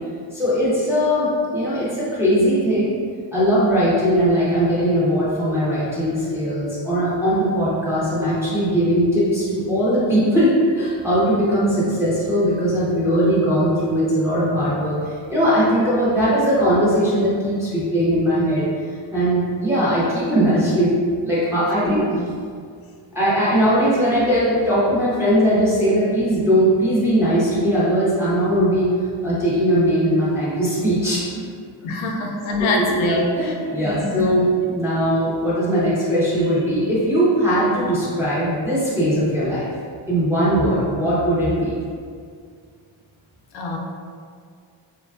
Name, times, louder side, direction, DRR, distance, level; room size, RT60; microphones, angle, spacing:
voice 1, 0.3-3.0 3.3-18.7 19.1-20.9 21.2-22.0 23.1-28.9 29.2-31.4 32.6-39.7 40.1-41.8, equal, 5° right, -10 dB, 0.4 m, -19 dB
voice 2, 21.8-22.2 31.8-34.2 43.5-43.8, left 2 dB, 90° left, 0 dB, 0.6 m, -25 dB
3.1 x 2.2 x 2.3 m, 2.1 s
cardioid pair, 180°, 46 cm